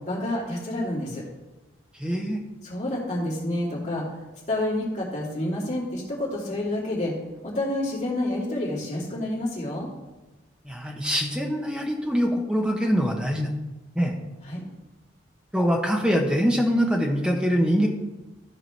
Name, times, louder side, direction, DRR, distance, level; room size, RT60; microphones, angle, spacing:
voice 1, 0.1-1.2 2.6-4.0 4.5-7.1 7.4-9.9 14.5-14.6, left 1 dB, 35° left, -5 dB, 2.8 m, -28 dB
voice 2, 2.0-2.4 10.6-13.5 13.9-14.1 15.5-17.9, equal, 5° right, 1 dB, 1.1 m, -23 dB
13.5 x 5.0 x 4.6 m, 1.1 s
head